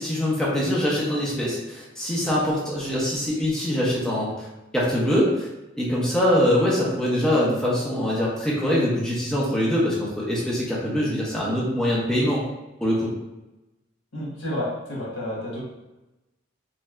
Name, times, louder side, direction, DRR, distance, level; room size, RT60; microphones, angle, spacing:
voice 1, 0.0-4.5 4.7-5.5 5.8-12.4 12.8-13.1, equal, 5° left, -6 dB, 0.5 m, -23 dB
voice 2, 14.1-15.6, left 1 dB, 85° left, -4 dB, 1.0 m, -30 dB
3.1 x 2.7 x 2.3 m, 1.0 s
head